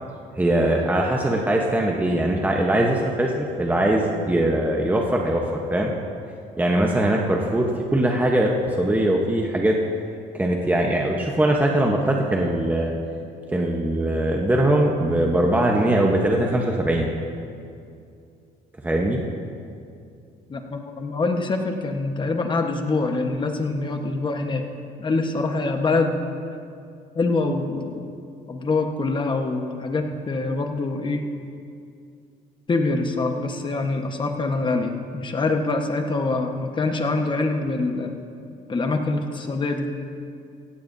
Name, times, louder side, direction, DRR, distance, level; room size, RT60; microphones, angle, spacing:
voice 1, 0.4-5.4 5.7-5.9 6.6-9.8 10.3-12.9 13.5-17.1 18.8-19.2, right 1 dB, 10° right, 0 dB, 1.0 m, -21 dB
voice 2, 20.5-24.6 25.0-26.2 27.1-28.0 28.5-31.2 32.7-38.1 38.7-39.9, left 3 dB, 30° left, 4 dB, 1.3 m, -25 dB
17.0 x 15.0 x 2.7 m, 2.4 s
cardioid pair, 110°, 17 cm